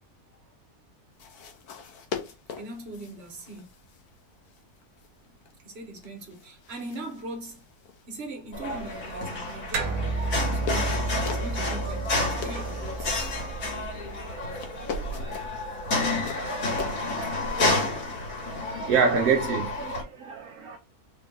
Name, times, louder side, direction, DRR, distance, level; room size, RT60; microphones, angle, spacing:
sound 1, 1.1-18.1, left 7 dB, 85° left, 1.3 m, -43 dB
voice 1, 2.6-3.7 5.2-7.7 8.1-10.0 10.5-13.1, right 2 dB, 45° right, 1.2 m, -40 dB
sound 2, 8.5-20.0, left 2 dB, 65° left, 2.0 m, -30 dB
sound 3, 9.7-14.5, right 2 dB, 85° right, 1.2 m, -32 dB
voice 2, 18.9-20.8, right 6 dB, 65° right, 0.9 m, -25 dB
3.7 x 2.5 x 3.5 m
omnidirectional pair, 1.6 m